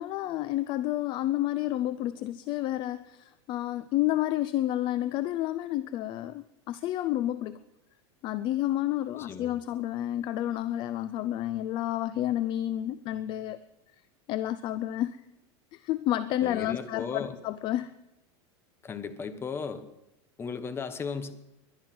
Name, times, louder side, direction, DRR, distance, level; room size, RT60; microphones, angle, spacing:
voice 1, 0.0-7.6 8.2-13.6 14.3-15.2 15.7-18.0, left 13 dB, 35° left, 15 dB, 0.5 m, -30 dB
voice 2, 9.1-9.6 16.4-17.4 18.8-19.8 20.4-21.3, left 5 dB, 15° left, 11 dB, 1.1 m, -36 dB
21.5 x 11.0 x 6.1 m, 0.92 s
supercardioid pair, 160°, 14 cm